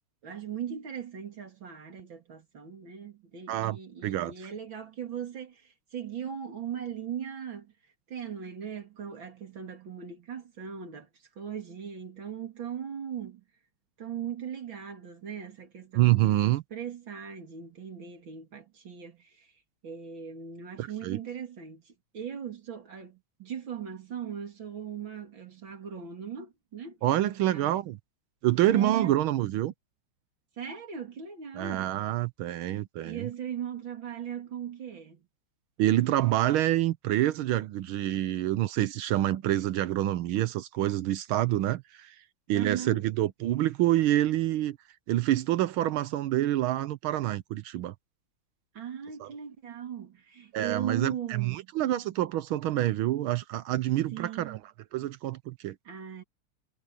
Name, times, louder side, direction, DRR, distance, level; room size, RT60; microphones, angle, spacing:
voice 1, 0.2-7.7 8.1-11.1 11.4-13.4 14.0-19.5 19.8-27.0 27.5-27.8 28.7-29.1 30.6-32.0 33.0-35.2 42.5-43.0 48.7-51.7 54.1-54.6 55.8-56.2, right 8 dB, 65° right, 3.3 m, -39 dB
voice 2, 3.5-4.3 15.9-16.6 20.8-21.2 27.0-28.0 28.4-29.7 31.5-33.3 35.8-42.2 42.5-44.8 45.1-47.9 49.2-49.3 50.5-54.6 54.9-55.8, right 14 dB, 80° right, 1.5 m, -27 dB
omnidirectional pair, 2.3 m